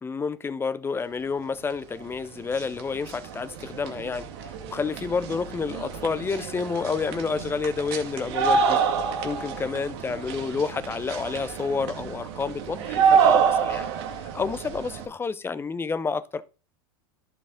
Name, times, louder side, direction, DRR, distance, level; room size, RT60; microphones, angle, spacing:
voice 1, 0.0-8.8 9.2-13.9 14.3-16.4, left 5 dB, 15° left, 0.7 m, -29 dB
sound 1, 2.0-2.1 2.4-15.1, right 6 dB, 65° right, 2.0 m, -27 dB
11.0 x 4.7 x 3.9 m
hypercardioid pair, 105°, 14 cm